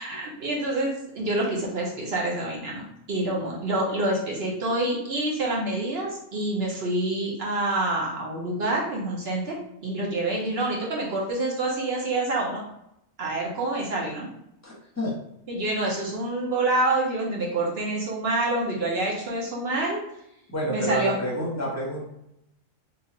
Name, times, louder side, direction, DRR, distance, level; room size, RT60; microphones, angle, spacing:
voice 1, 0.0-12.6 13.2-14.3 15.5-20.0 20.7-21.1, right 2 dB, 55° right, -3 dB, 0.9 m, -27 dB
voice 2, 14.6-15.2 20.5-22.0, equal, 15° left, -6 dB, 0.8 m, -28 dB
3.0 x 2.4 x 3.8 m, 0.80 s
omnidirectional pair, 1.4 m